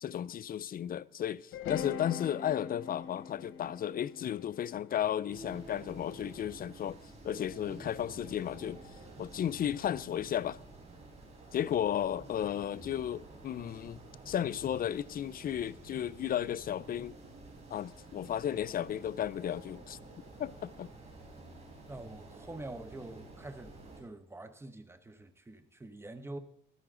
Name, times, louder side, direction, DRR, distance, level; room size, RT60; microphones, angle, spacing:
voice 1, 0.0-7.0 7.2-8.8 9.2-10.6 11.5-14.0 14.3-17.2 17.7-20.0 20.4-20.9, left 10 dB, 50° left, 0.4 m, -34 dB
sound 1, 1.5-5.7, left 8 dB, 85° left, 1.0 m, -42 dB
sound 2, 5.3-24.0, right 2 dB, 35° right, 4.9 m, -51 dB
voice 2, 21.9-26.4, right 2 dB, 10° right, 1.0 m, -46 dB
14.5 x 12.5 x 3.8 m
cardioid pair, 90°, 20 cm